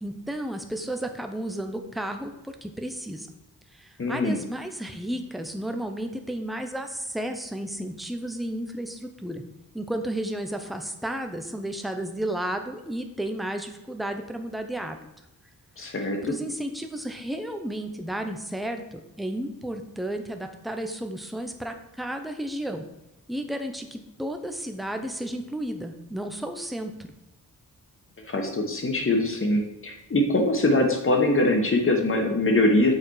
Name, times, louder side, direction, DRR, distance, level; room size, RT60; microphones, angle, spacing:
voice 1, 0.0-2.3 2.6-3.3 3.8-9.4 9.7-15.0 15.8-16.0 16.2-22.8 23.3-26.9, right 1 dB, ahead, 5 dB, 0.6 m, -32 dB
voice 2, 4.0-4.4 15.8-16.4 28.3-32.9, left 1 dB, 35° left, 3 dB, 1.2 m, -23 dB
6.7 x 4.3 x 4.7 m, 0.91 s
wide cardioid pair, 135°, 35 cm